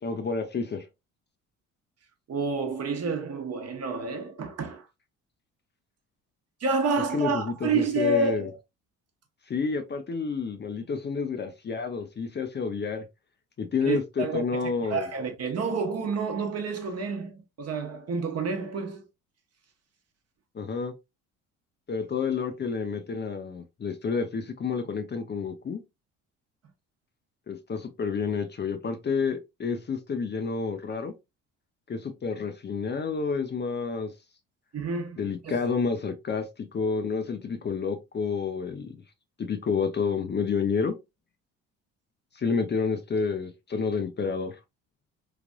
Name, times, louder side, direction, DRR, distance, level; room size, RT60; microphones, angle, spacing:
voice 1, 0.0-0.9 7.1-8.5 9.5-13.1 13.6-15.1 20.5-20.9 21.9-25.8 27.5-31.1 31.9-34.1 35.2-39.0 39.4-41.0 42.3-44.6, left 5 dB, 30° left, 0.6 m, -29 dB
voice 2, 2.3-4.9 6.6-8.6 13.8-14.4 14.8-19.0 34.7-35.6, right 3 dB, 45° right, 1.0 m, -29 dB
3.3 x 2.4 x 2.2 m
supercardioid pair, 65°, 35 cm